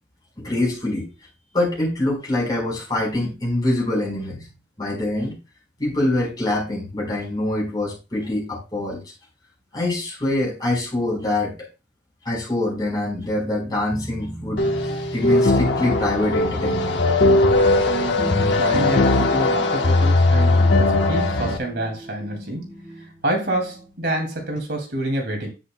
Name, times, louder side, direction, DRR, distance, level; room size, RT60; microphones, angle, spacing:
voice 1, 0.4-1.1 1.5-4.5 4.8-5.4 5.8-9.0 9.7-11.7 12.2-14.7 15.1-17.0, left 1 dB, 20° left, -4 dB, 4.4 m, -24 dB
sound 1, 13.9-24.6, equal, 40° left, 4.4 m, -36 dB
sound 2, 14.6-21.6, left 2 dB, 80° left, 1.1 m, -19 dB
voice 2, 17.5-22.7 23.0-25.5, right 1 dB, 65° right, 2 dB, 2.4 m, -28 dB
9.9 x 8.3 x 2.2 m, 0.28 s
head